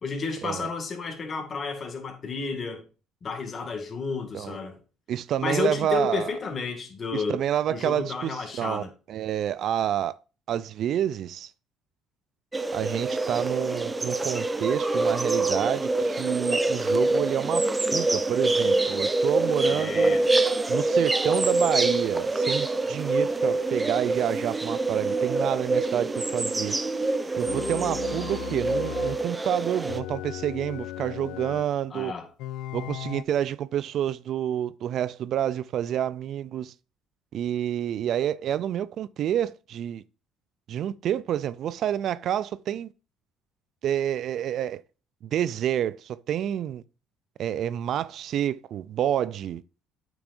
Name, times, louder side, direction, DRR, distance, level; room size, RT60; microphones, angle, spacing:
voice 1, 0.0-2.8 3.2-4.8 5.4-7.4 7.7-8.9 19.7-20.3 31.9-32.3, left 4 dB, 35° left, 1.9 m, -31 dB
voice 2, 5.1-6.3 7.1-10.1 10.5-11.5 12.7-20.2 20.7-26.8 27.3-32.1 32.7-36.7 37.3-40.0 40.7-42.9 43.8-44.8 45.3-46.8 47.4-49.6, right 10 dB, 60° right, 0.3 m, -28 dB
sound 1, 12.5-30.0, right 2 dB, 15° right, 0.6 m, -26 dB
sound 2, 27.5-29.3 29.9-31.7 32.4-33.2, left 14 dB, 75° left, 0.4 m, -36 dB
8.4 x 6.1 x 2.6 m
cardioid pair, 105°, 0 cm